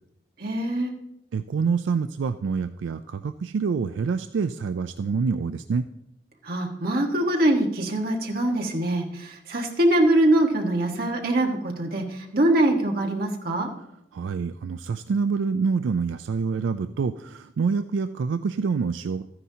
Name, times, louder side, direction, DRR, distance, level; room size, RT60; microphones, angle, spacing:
voice 1, 0.4-0.9 6.4-13.7, right 1 dB, 50° right, 1 dB, 1.4 m, -23 dB
voice 2, 1.3-5.8 14.1-19.2, right 5 dB, 85° right, 10 dB, 0.3 m, -26 dB
13.5 x 9.7 x 2.8 m, 0.81 s
head